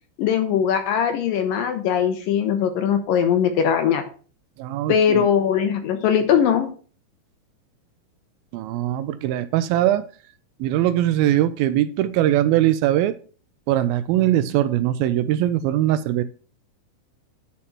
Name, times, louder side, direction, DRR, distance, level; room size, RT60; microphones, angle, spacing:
voice 1, 0.2-4.0 4.9-6.7, left 8 dB, 75° left, 7 dB, 2.3 m, -20 dB
voice 2, 4.6-5.2 8.5-10.0 10.6-13.2 13.7-16.2, right 13 dB, 80° right, 13 dB, 2.2 m, -21 dB
10.0 x 4.3 x 5.8 m, 0.40 s
omnidirectional pair, 4.5 m